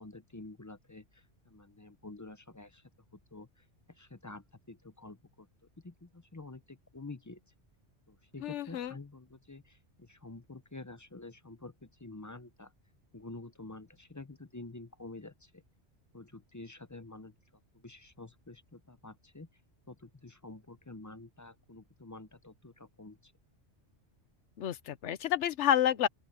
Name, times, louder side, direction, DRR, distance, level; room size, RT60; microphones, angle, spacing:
voice 1, 0.0-2.8 3.3-5.5 5.8-7.4 8.1-12.7 13.1-15.6 16.1-17.3 17.7-19.5 19.9-23.3, left 2 dB, 20° left, 0.5 m, -49 dB
voice 2, 8.4-8.9 24.6-26.1, left 10 dB, 85° left, 1.1 m, -29 dB
open air
omnidirectional pair, 1.2 m